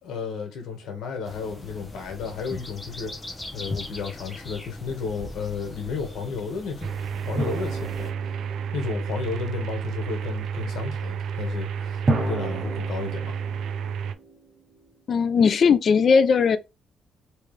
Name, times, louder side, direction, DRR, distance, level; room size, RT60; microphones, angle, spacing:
voice 1, 0.0-3.1 3.5-6.9 7.2-8.3 8.7-13.4, left 5 dB, 80° left, 1.5 m, -33 dB
sound 1, 1.2-8.1, left 1 dB, 25° left, 1.3 m, -40 dB
sound 2, 6.8-14.1, right 7 dB, 75° right, 0.4 m, -31 dB
sound 3, 7.4-9.7 12.1-15.0, right 2 dB, 30° right, 1.0 m, -32 dB
voice 2, 15.1-16.6, left 5 dB, 55° left, 0.4 m, -18 dB
3.2 x 3.2 x 3.3 m
cardioid pair, 90°, 0 cm